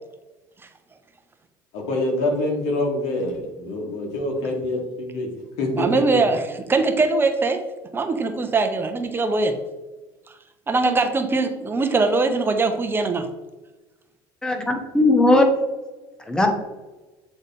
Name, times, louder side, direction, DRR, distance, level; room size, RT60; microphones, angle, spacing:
voice 1, 1.7-5.3 5.6-6.0, left 2 dB, 75° left, 2 dB, 1.7 m, -25 dB
voice 2, 5.7-7.6 7.9-9.5 10.7-13.3, right 3 dB, 20° right, 6 dB, 0.7 m, -21 dB
voice 3, 14.4-15.5 16.3-16.5, left 2 dB, 5° left, 4 dB, 0.9 m, -18 dB
8.0 x 3.5 x 4.2 m, 1.1 s
cardioid pair, 120°, 11 cm